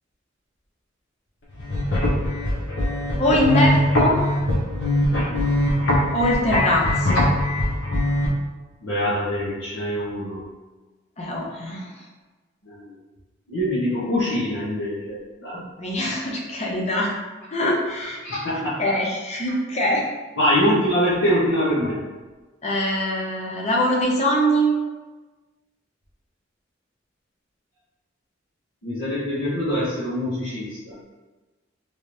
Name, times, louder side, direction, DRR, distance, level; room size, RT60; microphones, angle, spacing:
sound 1, 1.5-8.3, left 1 dB, 65° left, 0.7 m, -22 dB
voice 1, 3.2-4.2 6.1-7.3 11.2-12.0 15.8-17.1 17.5-18.2 18.8-20.0 22.6-24.7, equal, 35° left, -2 dB, 0.6 m, -22 dB
voice 2, 8.8-10.4 12.6-13.0 13.5-15.6 17.9-18.8 20.4-22.0 28.8-31.0, equal, 90° left, -12 dB, 1.0 m, -24 dB
3.2 x 2.7 x 3.1 m, 1.2 s
head